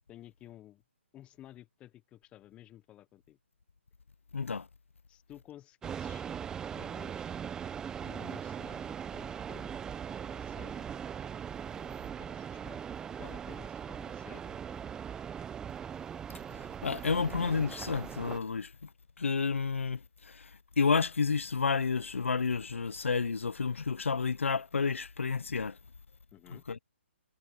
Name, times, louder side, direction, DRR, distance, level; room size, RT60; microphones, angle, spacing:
voice 1, 0.1-0.8 1.1-3.4 5.1-6.3 6.6-7.3 8.0-10.9 11.7-11.9 12.2-12.8 13.2-14.8 15.1-15.2 26.3-26.6, left 13 dB, 15° left, 1.2 m, -53 dB
voice 2, 4.3-4.7 16.5-18.9 19.2-20.5 20.8-25.8 26.5-26.8, left 5 dB, 80° left, 1.0 m, -31 dB
sound 1, 5.8-18.4, right 8 dB, 10° right, 0.8 m, -40 dB
hypercardioid pair, 145°, 7 cm